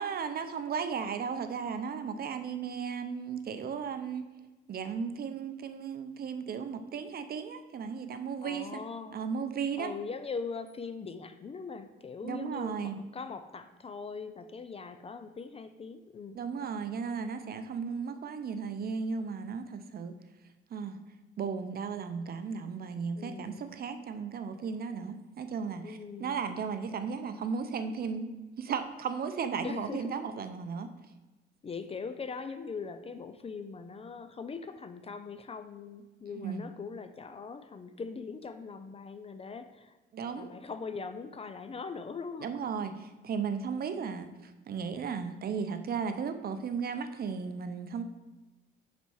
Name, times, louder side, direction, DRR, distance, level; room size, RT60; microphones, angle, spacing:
voice 1, 0.0-4.3 4.7-8.8 9.1-9.9 12.2-13.0 16.4-20.1 20.7-21.0 21.4-28.3 28.6-30.9 36.3-36.6 40.1-40.5 42.4-48.0, right 6 dB, 50° right, 9 dB, 0.6 m, -35 dB
voice 2, 8.4-9.2 9.8-16.4 23.2-23.6 25.8-26.4 29.6-30.2 31.6-40.0 40.4-42.5, left 5 dB, 30° left, 10 dB, 0.4 m, -41 dB
5.4 x 4.1 x 4.7 m, 1.1 s
cardioid pair, 90°, 20 cm